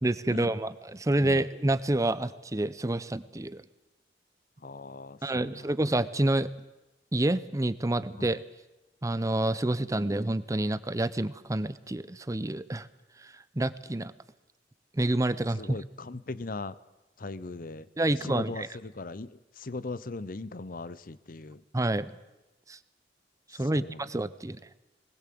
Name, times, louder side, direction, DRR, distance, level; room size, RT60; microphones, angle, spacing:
voice 1, 0.0-3.6 5.2-6.5 7.1-8.4 9.0-12.9 13.2-14.1 14.9-15.8 18.0-18.7 21.7-22.1 22.7-22.8 23.6-24.6, right 1 dB, 20° right, 15 dB, 0.6 m, -28 dB
voice 2, 1.2-1.5 4.6-5.7 8.2-8.4 15.6-16.8 17.2-21.6 23.6-24.1, left 3 dB, 55° left, 17 dB, 0.8 m, -39 dB
20.5 x 19.5 x 7.7 m, 1.0 s
head